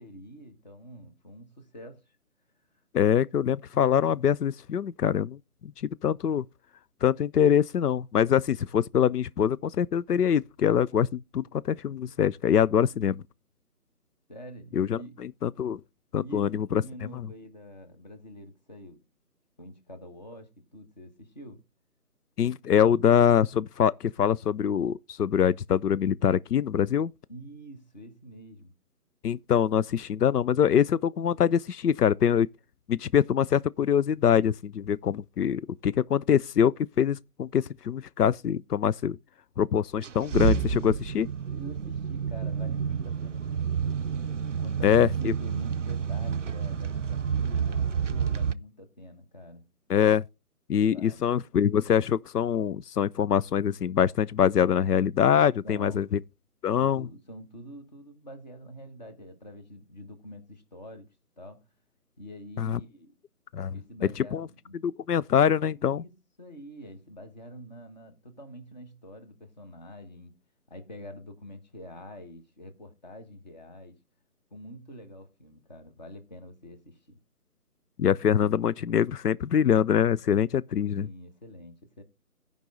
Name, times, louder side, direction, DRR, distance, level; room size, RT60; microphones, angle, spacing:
voice 1, 0.0-2.2 14.3-15.2 16.2-19.0 19.6-21.6 27.3-28.7 41.5-44.1 44.6-49.7 50.8-51.3 55.6-56.1 56.7-61.1 61.4-61.6 62.2-63.1 63.7-64.8 65.7-66.1 66.4-70.4 70.7-74.0 74.5-77.2 80.8-82.0, equal, 30° left, 1.4 m, -46 dB
voice 2, 2.9-6.4 7.0-13.2 14.7-15.8 16.1-16.8 17.1-17.3 22.4-27.1 29.2-32.5 32.9-39.2 39.6-41.3 44.8-45.3 49.9-50.2 50.7-56.2 56.6-57.1 62.6-62.8 63.5-63.7 64.3-64.5 64.8-66.0 78.0-81.1, left 8 dB, 90° left, 0.5 m, -24 dB
sound 1, 40.0-48.5, right 7 dB, 55° right, 0.5 m, -29 dB
15.0 x 5.3 x 3.8 m
figure-of-eight pair, 160°, 45 cm